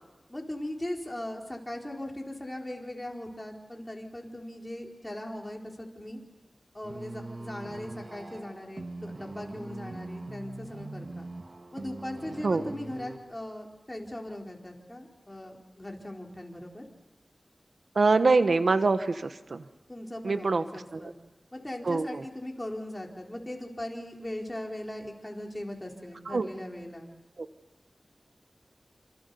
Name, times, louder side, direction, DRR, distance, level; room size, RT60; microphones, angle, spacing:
voice 1, 0.3-6.2 6.7-11.3 11.7-16.8 19.9-21.1 21.5-27.1, left 1 dB, 20° left, 1 dB, 4.5 m, -39 dB
sound 1, 6.8-13.2, right 2 dB, 65° right, 2.5 m, -42 dB
voice 2, 17.9-19.6 20.2-21.1 21.8-22.2 26.3-26.5 27.4-27.5, right 3 dB, 85° right, 10 dB, 1.2 m, -25 dB
28.0 x 27.0 x 7.1 m, 1.1 s
wide cardioid pair, 65°, 0 cm